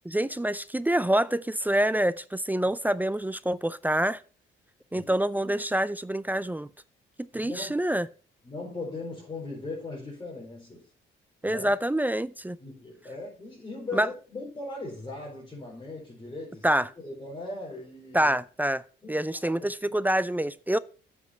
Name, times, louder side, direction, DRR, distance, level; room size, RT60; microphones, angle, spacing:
voice 1, 0.0-4.2 4.9-6.7 7.2-8.1 11.4-12.6 13.9-14.1 16.6-16.9 18.1-18.8 19.1-20.8, right 1 dB, 10° right, 0.4 m, -26 dB
voice 2, 7.3-7.8 8.4-10.9 11.4-11.7 12.6-16.7 17.0-18.4 19.0-19.5, left 2 dB, 20° left, 4.1 m, -39 dB
8.1 x 6.0 x 5.5 m
cardioid pair, 90°, 20 cm